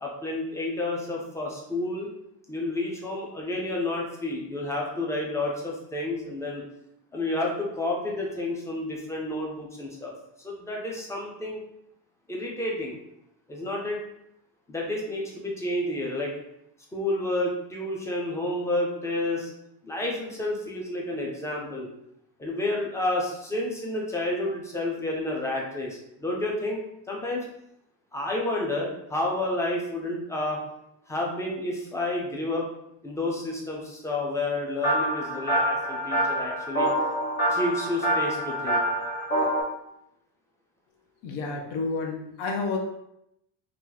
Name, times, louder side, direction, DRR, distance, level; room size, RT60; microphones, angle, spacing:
voice 1, 0.0-2.1 2.5-6.7 7.1-10.1 10.4-11.6 12.3-13.0 13.5-14.0 14.7-16.3 16.9-19.5 19.8-21.9 22.4-27.4 28.1-30.6 31.1-32.7 33.0-36.9 37.5-38.8, left 2 dB, 10° left, -2 dB, 0.3 m, -30 dB
sound 1, 34.8-39.6, equal, 25° left, 1.1 m, -26 dB
voice 2, 41.2-42.8, left 4 dB, 80° left, 2 dB, 0.8 m, -30 dB
2.9 x 2.5 x 3.8 m, 0.79 s
cardioid pair, 180°, 41 cm